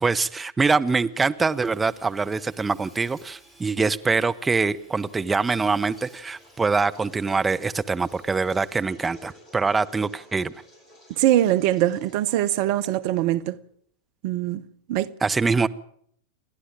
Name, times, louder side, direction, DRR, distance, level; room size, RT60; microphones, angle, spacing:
voice 1, 0.0-10.5 15.2-15.7, right 4 dB, 10° right, 0.8 m, -24 dB
Hammer / Sawing, 0.9-9.0, right 1 dB, 5° left, 7.2 m, -56 dB
sound 1, 5.0-13.5, left 1 dB, 25° left, 6.8 m, -53 dB
voice 2, 11.1-13.6 14.2-14.6 14.9-15.1, right 13 dB, 45° right, 0.8 m, -22 dB
29.0 x 11.5 x 9.0 m
figure-of-eight pair, 90°, 0 cm